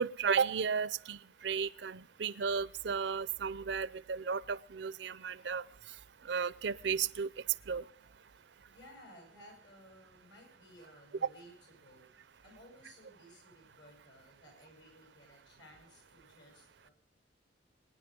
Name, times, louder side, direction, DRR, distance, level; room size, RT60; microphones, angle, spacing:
voice 1, 0.0-5.6 6.2-7.3 7.7-7.8, right 6 dB, 65° right, 20 dB, 0.5 m, -34 dB
voice 2, 8.7-11.5 11.8-12.1 12.4-16.9, equal, 70° left, 2 dB, 8.0 m, -57 dB
23.0 x 10.0 x 5.2 m, 0.67 s
head